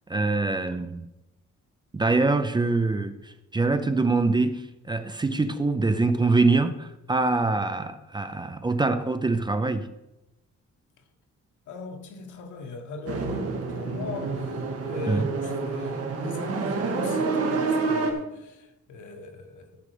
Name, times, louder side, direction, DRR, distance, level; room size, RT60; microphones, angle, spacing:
voice 1, 0.1-1.1 1.9-9.9 15.1-15.3, right 3 dB, 15° right, 0.5 m, -24 dB
voice 2, 11.7-19.8, left 4 dB, 85° left, 1.6 m, -39 dB
sound 1, 13.1-18.1, right 4 dB, 50° right, 1.7 m, -28 dB
13.5 x 6.6 x 5.0 m
wide cardioid pair, 170°, 29 cm